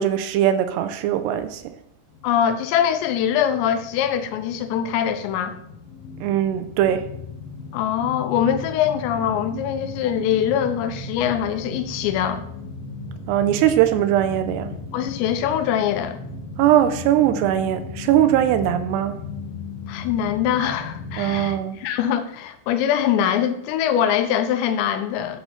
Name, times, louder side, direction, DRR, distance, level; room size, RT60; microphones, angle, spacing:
voice 1, 0.0-1.7 6.2-7.1 13.3-14.7 16.6-19.1 21.2-21.8, right 11 dB, 80° right, 10 dB, 2.6 m, -20 dB
sound 1, 2.1-21.5, left 4 dB, 70° left, 2.8 m, -36 dB
voice 2, 2.2-5.5 7.7-12.4 14.9-16.2 19.9-25.4, left 9 dB, 90° left, 9 dB, 3.0 m, -23 dB
12.5 x 4.2 x 4.3 m, 0.74 s
omnidirectional pair, 5.0 m